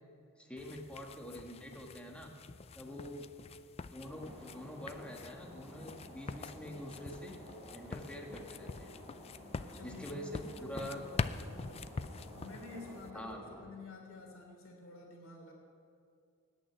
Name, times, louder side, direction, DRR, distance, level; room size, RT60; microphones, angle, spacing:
voice 1, 0.4-2.3 2.7-3.2 3.9-7.4 7.7-8.9 9.8-11.0 13.1-13.4, equal, 5° left, 1 dB, 1.5 m, -45 dB
sound 1, 0.6-13.1, left 4 dB, 25° left, 0.3 m, -45 dB
sound 2, 3.9-13.6, left 1 dB, 25° right, 4.3 m, -53 dB
voice 2, 9.5-11.9 12.3-15.5, left 3 dB, 60° left, 1 dB, 3.1 m, -51 dB
17.5 x 6.4 x 9.2 m, 2.4 s
head